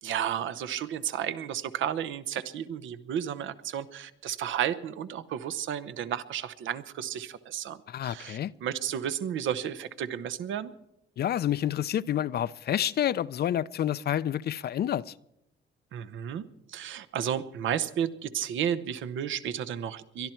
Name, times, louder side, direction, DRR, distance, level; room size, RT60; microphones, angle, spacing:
voice 1, 0.0-7.8 8.0-10.7 15.9-20.3, right 9 dB, 75° right, 0.9 m, -32 dB
voice 2, 7.9-8.5 11.2-15.1, left 11 dB, 55° left, 0.5 m, -29 dB
22.5 x 12.0 x 4.5 m
cardioid pair, 90°, 20 cm